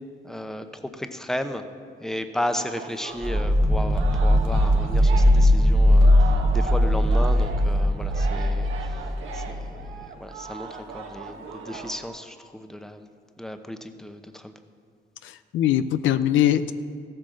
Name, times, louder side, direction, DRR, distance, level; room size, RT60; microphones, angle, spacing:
voice 1, 0.2-1.7 2.0-13.1 13.4-14.5, left 1 dB, ahead, 8 dB, 0.9 m, -34 dB
Singing, 2.4-12.0, right 5 dB, 80° right, 1.4 m, -38 dB
sound 1, 3.2-9.9, equal, 15° right, 1.2 m, -20 dB
voice 2, 15.2-16.7, left 11 dB, 75° left, 12 dB, 0.5 m, -22 dB
15.0 x 8.6 x 6.5 m, 2.2 s
cardioid pair, 90°, 20 cm